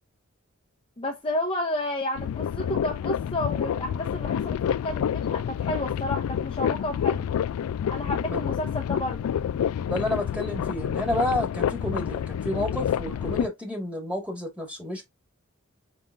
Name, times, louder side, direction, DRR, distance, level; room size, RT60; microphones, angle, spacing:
voice 1, 1.0-7.3 7.9-9.2, left 1 dB, 25° left, 0.7 m, -31 dB
sound 1, 2.1-13.5, left 8 dB, 90° left, 0.3 m, -28 dB
voice 2, 9.8-15.1, left 1 dB, 5° right, 1.7 m, -30 dB
5.1 x 3.6 x 2.5 m
head